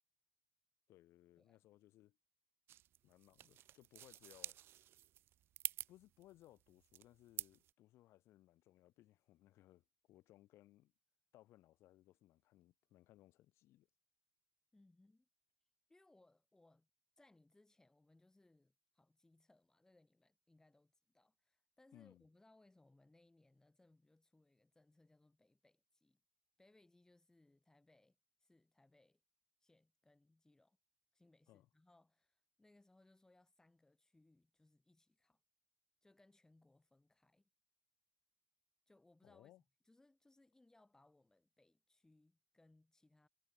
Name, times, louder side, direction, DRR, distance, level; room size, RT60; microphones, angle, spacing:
voice 1, 0.9-2.2 3.0-4.6 5.9-10.9 11.3-13.9 21.9-22.2 31.5-31.7 39.2-39.6, left 15 dB, 55° left, 6.7 m, -65 dB
sound 1, 2.7-7.7, right 12 dB, 45° right, 0.3 m, -49 dB
voice 2, 14.7-15.3 15.9-16.9 17.2-26.2 26.6-29.2 29.6-30.8 31.1-35.4 36.0-37.5 38.9-39.5 39.8-43.3, left 2 dB, 10° left, 7.0 m, -71 dB
hypercardioid pair, 75°, 5 cm